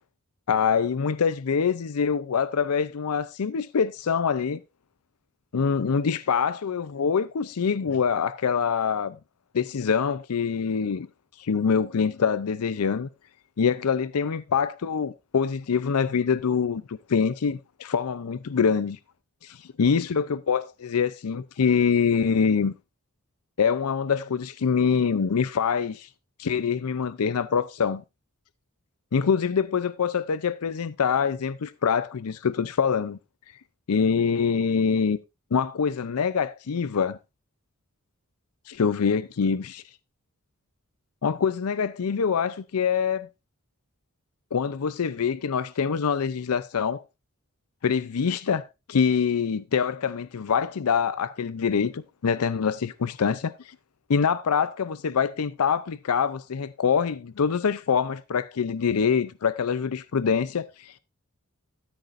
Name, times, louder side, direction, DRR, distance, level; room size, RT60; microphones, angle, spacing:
voice 1, 0.5-4.6 5.5-9.2 9.5-11.1 11.4-13.1 13.6-19.0 19.4-22.7 23.6-26.1 26.4-28.0 29.1-33.2 33.9-35.2 35.5-37.2 38.7-39.8 41.2-43.3 44.5-47.0 47.8-53.4 54.1-61.0, left 6 dB, 85° left, 0.5 m, -25 dB
13.0 x 9.1 x 2.5 m
head